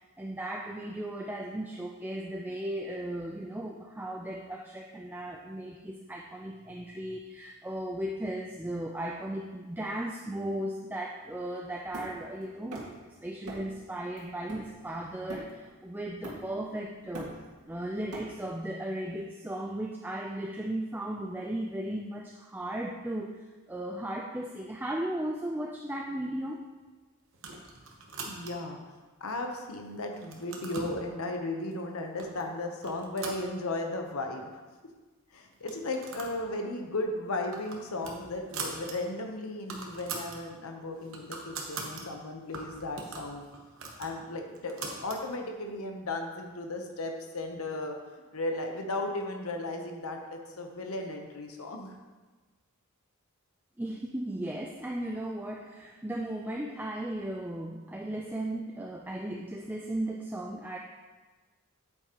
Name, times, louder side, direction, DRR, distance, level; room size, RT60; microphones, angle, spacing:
voice 1, 0.2-17.3 17.7-23.3 23.7-26.6 53.8-60.8, right 1 dB, 10° right, 0 dB, 0.4 m, -36 dB
Hammer, 11.9-13.1 13.5-13.8 14.2-15.8 16.2-16.7 17.0-18.6, right 1 dB, 90° right, 1.9 m, -43 dB
sound 1, 27.3-28.8 29.3-29.8 30.1-31.0 31.7-31.8 32.2-32.5 32.8-34.0 34.4-34.5 34.7-34.8 35.5-36.4 36.7-36.9 37.3-39.0 39.3-39.4 39.6-40.4 40.8-42.0 42.5-45.2, right 4 dB, 60° right, 1.1 m, -41 dB
voice 2, 28.2-28.8 29.2-34.5 35.3-43.4 44.0-48.0 48.3-52.0, left 2 dB, 75° left, 3 dB, 0.9 m, -35 dB
8.6 x 8.2 x 2.9 m, 1.3 s
head